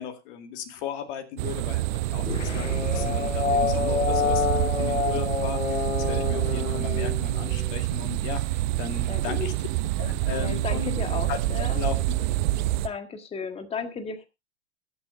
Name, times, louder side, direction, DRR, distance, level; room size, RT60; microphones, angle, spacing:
voice 1, 0.0-9.5 10.0-11.0 11.3-11.4 11.7-12.0, left 9 dB, 45° left, 6 dB, 2.2 m, -36 dB
sound 1, 1.4-12.9, right 16 dB, 40° right, 0.8 m, -27 dB
sound 2, 2.2-7.8, left 6 dB, 90° left, 0.7 m, -28 dB
voice 2, 3.5-3.8 9.1-9.6 10.4-11.8 12.8-14.3, left 5 dB, 15° left, 8 dB, 1.7 m, -35 dB
22.0 x 8.5 x 2.6 m, 0.25 s
figure-of-eight pair, 100°, 35 cm